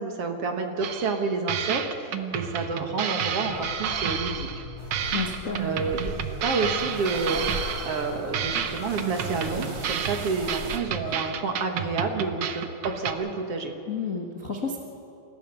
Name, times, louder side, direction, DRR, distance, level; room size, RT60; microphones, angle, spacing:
voice 1, 0.0-4.6 5.6-13.7, right 4 dB, 55° right, 4 dB, 2.2 m, -29 dB
sound 1, 0.8-1.2 1.5-4.7 4.9-8.1 8.3-13.1, right 8 dB, 75° right, 1.1 m, -31 dB
sound 2, 3.5-11.2, left 3 dB, 70° left, 4.9 m, -41 dB
sound 3, 4.8-10.8, right 3 dB, 35° right, 1.8 m, -39 dB
voice 2, 5.1-5.6 13.9-14.8, left 5 dB, 45° left, 0 dB, 1.1 m, -31 dB
28.5 x 15.0 x 6.9 m, 2.7 s
omnidirectional pair, 3.6 m